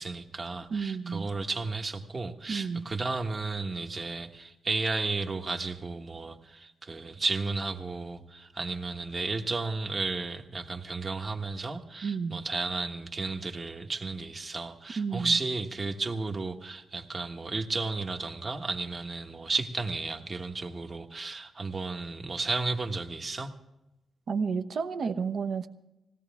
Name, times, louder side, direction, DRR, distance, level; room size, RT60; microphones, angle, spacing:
voice 1, 0.0-23.5, right 3 dB, 30° right, 5 dB, 1.3 m, -33 dB
voice 2, 0.7-1.3 2.5-2.9 12.0-12.4 15.0-15.4 24.3-25.7, right 5 dB, 60° right, 10 dB, 1.0 m, -31 dB
20.5 x 16.5 x 3.6 m, 0.94 s
cardioid pair, 110°, 0 cm